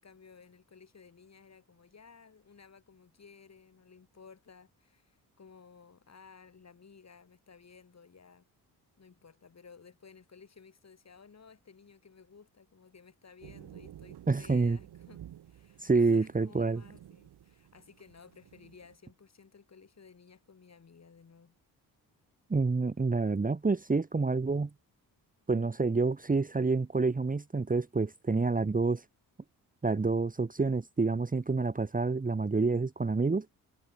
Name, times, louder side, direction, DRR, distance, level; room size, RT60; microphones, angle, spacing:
voice 1, 0.0-8.5 9.0-21.6, left 5 dB, 40° left, 6.8 m, -56 dB
sound 1, 13.4-19.0, right 11 dB, 80° right, 4.0 m, -52 dB
voice 2, 14.3-14.8 15.8-16.8 22.5-24.7 25.5-29.0 29.8-33.5, right 4 dB, 20° right, 1.4 m, -28 dB
cardioid pair, 85°, 39 cm